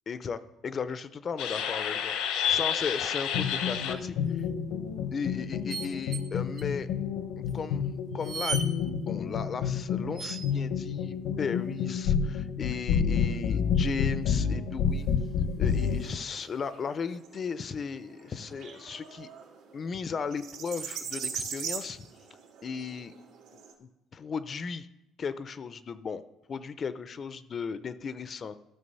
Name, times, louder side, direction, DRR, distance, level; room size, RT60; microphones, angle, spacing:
voice 1, 0.1-4.5 5.1-6.9 7.4-15.1 15.6-19.3 19.7-22.1 22.6-23.1 23.5-24.9 25.2-26.2 26.5-28.6, left 6 dB, 30° left, 14 dB, 0.4 m, -36 dB
sound 1, 1.4-16.1, left 7 dB, 85° left, 0.9 m, -29 dB
sound 2, 3.9-4.3 5.7-6.3 6.6-6.7 7.5-7.6 8.1-8.7 10.1-10.6 12.6-13.1 14.7-14.8 15.0-15.1 15.9-16.7 17.1-17.2, right 5 dB, 45° right, 0.9 m, -38 dB
sound 3, 15.7-23.7, right 7 dB, 85° right, 1.9 m, -41 dB
12.5 x 6.3 x 5.4 m, 0.90 s
cardioid pair, 165°, 0 cm